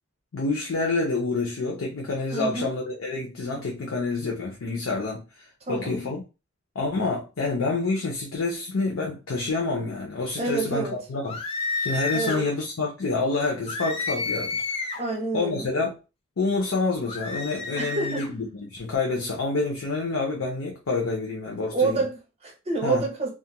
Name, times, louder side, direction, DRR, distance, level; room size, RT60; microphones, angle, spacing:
voice 1, 0.3-5.2 5.7-6.2 6.8-11.4 11.8-14.9 15.3-16.0 16.4-22.0 22.8-23.1, left 3 dB, 85° left, 0.6 m, -28 dB
voice 2, 2.3-2.7 3.5-3.6 5.7-6.0 10.4-10.9 12.1-12.5 15.0-15.7 17.8-18.3 21.7-23.3, right 3 dB, 30° right, 0.6 m, -28 dB
sound 1, 11.2-12.4 13.7-15.1 17.1-18.3, left 3 dB, 30° left, 0.4 m, -30 dB
2.4 x 2.1 x 2.8 m
head